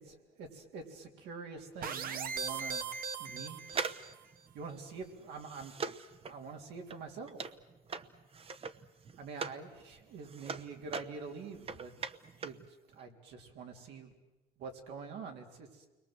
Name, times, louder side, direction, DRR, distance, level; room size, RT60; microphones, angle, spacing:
voice 1, 0.4-2.8 3.2-3.8 4.5-5.7 6.3-7.4 9.2-11.9 12.4-12.6 12.9-14.1 14.6-15.9, right 5 dB, 85° right, 2 dB, 3.6 m, -45 dB
sound 1, 1.8-4.2, right 5 dB, 60° right, 1.2 m, -39 dB
sound 2, 3.7-9.7 10.0-12.7 12.9-13.0, right 5 dB, 35° right, 1.0 m, -42 dB
29.0 x 22.0 x 7.9 m, 1.1 s
cardioid pair, 110°, 17 cm